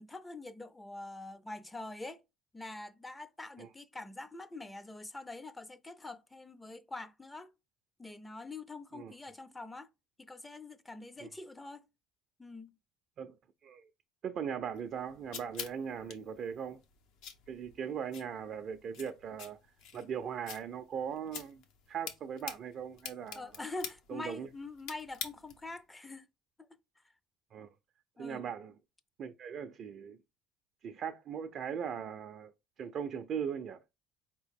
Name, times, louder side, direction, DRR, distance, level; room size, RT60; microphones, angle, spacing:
voice 1, 0.0-2.2 2.5-7.5 8.0-9.9 10.2-11.9 12.4-12.8 23.3-26.3 26.6-26.7 28.2-28.5, left 2 dB, 15° left, 0.5 m, -45 dB
voice 2, 14.2-16.8 17.5-19.6 19.9-21.6 21.9-23.5 24.1-24.5 27.5-27.7 28.2-28.7 29.2-30.2 30.8-32.5 32.8-33.8, right 7 dB, 50° right, 0.4 m, -39 dB
sound 1, 14.7-25.8, left 7 dB, 70° left, 0.8 m, -48 dB
4.2 x 2.9 x 3.5 m
supercardioid pair, 90°, 0 cm